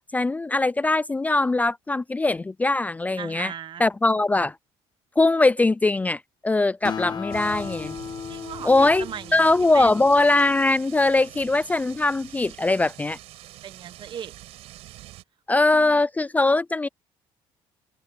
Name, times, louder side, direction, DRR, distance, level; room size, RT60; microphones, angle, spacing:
voice 1, 0.0-3.5 3.8-4.6 5.2-8.0 8.6-9.1 9.3-13.2 15.5-16.9, left 2 dB, 15° left, 0.4 m, -21 dB
voice 2, 3.2-3.8 8.3-9.9 13.6-14.3 15.6-16.0, right 9 dB, 50° right, 1.4 m, -38 dB
Acoustic guitar, 6.8-10.6, left 7 dB, 45° left, 1.8 m, -36 dB
sound 1, 7.3-15.2, right 16 dB, 80° right, 5.3 m, -44 dB
cardioid pair, 95°, 10 cm